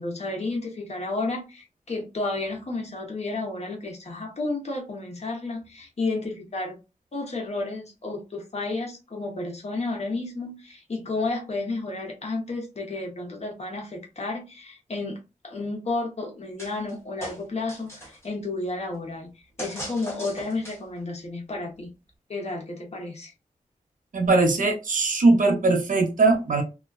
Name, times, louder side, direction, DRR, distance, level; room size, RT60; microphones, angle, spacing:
voice 1, 0.0-6.8 7.1-15.2 15.4-19.3 19.6-21.9 22.3-23.3, left 2 dB, 50° left, 0.9 m, -32 dB
sound 1, 16.6-16.9 17.2-18.3 19.6-21.0, equal, 20° left, 1.1 m, -38 dB
voice 2, 24.1-26.6, right 3 dB, 75° right, 0.7 m, -20 dB
2.3 x 2.3 x 2.3 m
wide cardioid pair, 75°, 14 cm